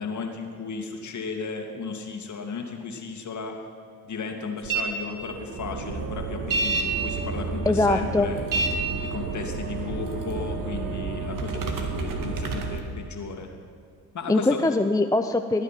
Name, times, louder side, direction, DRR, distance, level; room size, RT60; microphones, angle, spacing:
voice 1, 0.0-3.6 4.1-8.4 9.0-13.5 14.1-14.6, left 4 dB, 45° left, 3 dB, 2.4 m, -34 dB
sound 1, 4.6-4.8 5.2-12.8, right 3 dB, 50° right, 2.0 m, -29 dB
voice 2, 7.7-8.3 14.3-15.6, left 2 dB, 10° left, 7 dB, 0.6 m, -22 dB
20.0 x 9.8 x 5.9 m, 2.3 s
hypercardioid pair, 55°, 41 cm